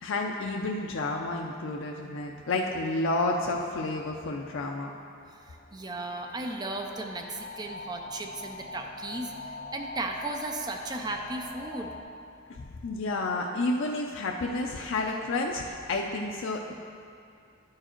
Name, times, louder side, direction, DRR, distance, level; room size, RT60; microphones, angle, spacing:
voice 1, 0.0-4.9 12.5-16.7, left 2 dB, 65° left, 1 dB, 0.5 m, -30 dB
sound 1, 5.3-12.0, left 2 dB, 25° left, 0.8 m, -43 dB
voice 2, 5.3-11.9, right 2 dB, 20° right, 3 dB, 0.5 m, -36 dB
11.0 x 4.7 x 4.4 m, 2.4 s
head